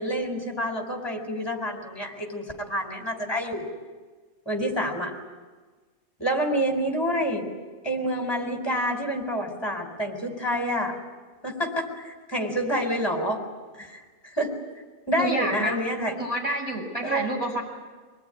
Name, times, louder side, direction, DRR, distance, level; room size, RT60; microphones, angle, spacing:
voice 1, 0.0-3.7 4.5-5.1 6.2-7.5 7.8-11.0 11.4-13.4 13.8-14.5 15.1-16.1 17.0-17.3, equal, 15° left, 3 dB, 4.2 m, -28 dB
voice 2, 15.2-15.8 16.2-17.6, right 1 dB, 25° right, 0 dB, 7.2 m, -28 dB
25.5 x 19.5 x 10.0 m, 1.4 s
omnidirectional pair, 1.5 m